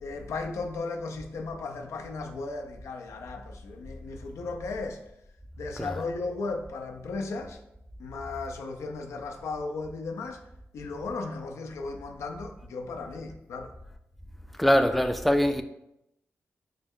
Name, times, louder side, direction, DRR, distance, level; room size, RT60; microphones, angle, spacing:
voice 1, 0.0-5.0 5.6-7.6 8.0-10.4 10.7-13.7, left 3 dB, 85° left, 0.4 m, -35 dB
voice 2, 14.6-15.6, equal, ahead, 0.3 m, -23 dB
4.0 x 2.2 x 3.6 m
cardioid pair, 50°, 5 cm